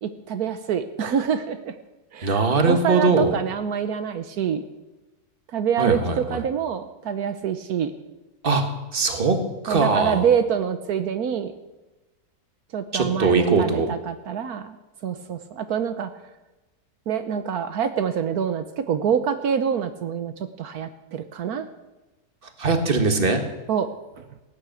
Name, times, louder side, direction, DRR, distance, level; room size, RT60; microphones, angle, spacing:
voice 1, 0.0-1.7 2.1-4.6 5.5-7.9 9.7-11.5 12.7-14.8 15.0-16.1 17.1-21.7 23.7-23.9, right 7 dB, 80° right, 9 dB, 1.4 m, -26 dB
voice 2, 2.2-3.4 5.8-6.4 8.4-8.6 8.9-9.4 9.6-10.2 12.9-13.9 22.6-23.4, right 3 dB, 35° right, 6 dB, 1.9 m, -21 dB
17.5 x 10.0 x 7.7 m, 1.1 s
omnidirectional pair, 1.6 m